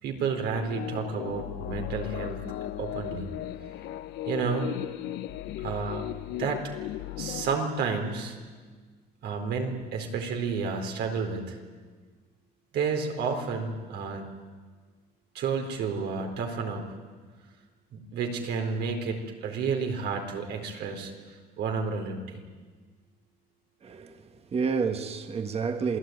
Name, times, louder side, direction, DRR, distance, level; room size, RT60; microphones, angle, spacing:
voice 1, 0.0-2.4 2.8-3.3 4.3-4.7 5.6-6.6 7.2-8.4 9.2-11.6 12.7-14.2 15.3-16.8 17.9-21.1 21.6-22.4, right 5 dB, 80° right, 4.3 m, -31 dB
sound 1, 0.5-7.6, left 14 dB, 85° left, 0.9 m, -36 dB
voice 2, 23.8-26.0, right 5 dB, 35° right, 1.7 m, -30 dB
27.5 x 19.0 x 9.5 m
cardioid pair, 110°, 17 cm